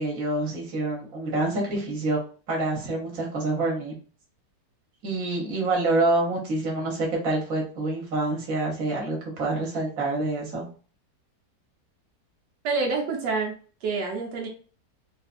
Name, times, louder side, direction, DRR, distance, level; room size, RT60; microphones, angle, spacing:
voice 1, 0.0-2.2 2.5-3.9 5.0-10.7, right 2 dB, 55° right, -2 dB, 1.5 m, -27 dB
voice 2, 12.6-13.5 13.8-14.5, right 4 dB, 90° right, 0 dB, 1.4 m, -27 dB
3.8 x 2.5 x 2.4 m, 0.39 s
omnidirectional pair, 1.8 m